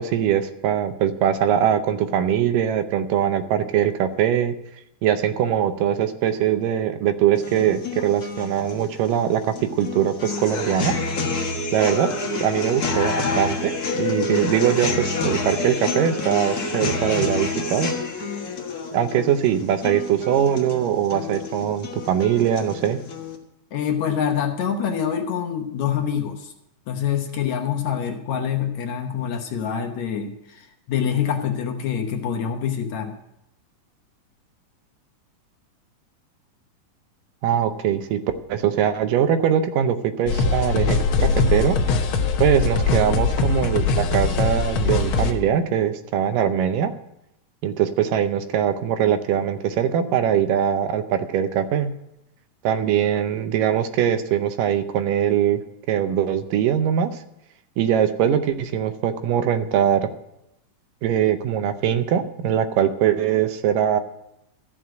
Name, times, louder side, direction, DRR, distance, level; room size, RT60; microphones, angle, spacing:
voice 1, 0.0-4.6 5.0-10.9 11.7-12.1 12.4-17.9 18.9-23.0 37.4-38.2 38.5-41.0 41.5-41.8 42.4-46.9 47.6-51.9 52.6-55.6 55.9-57.1 57.8-60.1 61.0-64.0, right 9 dB, 80° right, 10 dB, 2.4 m, -22 dB
sound 1, 7.3-23.3, left 3 dB, 45° left, 1.2 m, -28 dB
voice 2, 23.7-26.5 26.9-33.1, left 8 dB, 65° left, 4 dB, 2.1 m, -25 dB
sound 2, 40.3-45.3, left 4 dB, 85° left, 1.1 m, -21 dB
14.0 x 6.3 x 9.1 m, 0.85 s
omnidirectional pair, 3.9 m